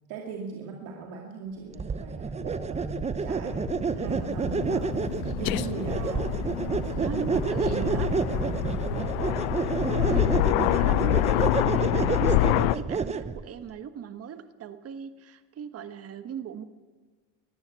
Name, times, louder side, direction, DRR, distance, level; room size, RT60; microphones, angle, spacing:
voice 1, 0.1-3.6 3.9-4.9 5.4-9.2, right 4 dB, 80° right, 0 dB, 2.6 m, -39 dB
sound 1, 1.8-13.4, right 5 dB, 20° right, 0.8 m, -29 dB
Aircraft, 3.2-12.7, left 17 dB, 85° left, 0.7 m, -27 dB
voice 2, 7.0-8.1 10.1-16.6, right 8 dB, 40° right, 10 dB, 1.5 m, -39 dB
21.5 x 14.5 x 8.4 m, 1.4 s
cardioid pair, 120°, 35 cm